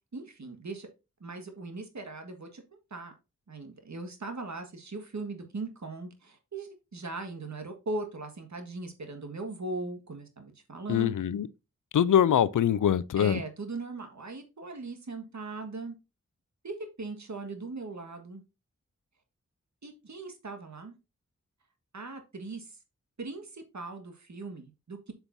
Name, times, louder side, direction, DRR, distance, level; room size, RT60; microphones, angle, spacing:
voice 1, 0.1-0.9 1.2-3.1 3.5-11.1 13.2-15.9 16.6-18.4 19.8-21.0 21.9-22.7 23.2-25.1, right 3 dB, 65° right, 1.7 m, -39 dB
voice 2, 10.9-11.5 11.9-13.4, left 9 dB, 90° left, 0.5 m, -23 dB
8.1 x 5.6 x 2.6 m
cardioid pair, 45°, 30 cm